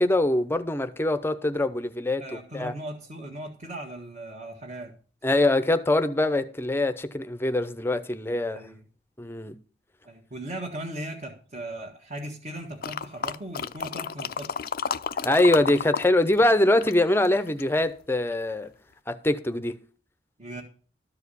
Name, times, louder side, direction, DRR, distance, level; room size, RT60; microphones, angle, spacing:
voice 1, 0.0-2.2 2.5-2.7 5.2-8.6 9.2-9.5 15.2-18.7 19.1-19.8, left 1 dB, 10° left, 0.7 m, -23 dB
voice 2, 2.2-4.9 8.5-8.8 10.0-14.5 20.4-20.6, right 1 dB, 40° right, 1.6 m, -38 dB
sound 1, 12.8-16.1 16.3-17.8 18.3-18.4, left 6 dB, 50° left, 0.4 m, -31 dB
13.0 x 4.8 x 8.3 m
head